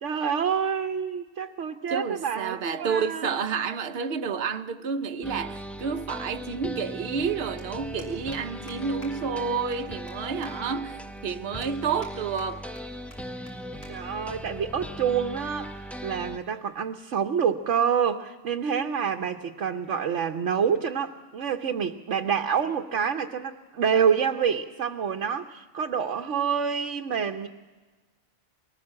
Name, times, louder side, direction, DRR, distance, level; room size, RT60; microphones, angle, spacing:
voice 1, 0.0-3.3 13.9-27.5, right 7 dB, 80° right, 1.2 m, -27 dB
voice 2, 1.9-12.6, right 6 dB, 60° right, 1.1 m, -30 dB
sound 1, 5.2-16.4, equal, ahead, 0.7 m, -39 dB
sound 2, 7.6-7.7 8.0-8.4 8.7-8.8 9.0-9.1 9.4-9.5 9.7-10.1 10.4-10.5 11.0-11.1 11.6-12.1 12.4-12.8 13.1-13.2 13.5-13.6 13.8-13.9 14.2-14.5 15.2-15.5, equal, 50° left, 5.8 m, -49 dB
23.0 x 19.0 x 7.5 m
omnidirectional pair, 1.2 m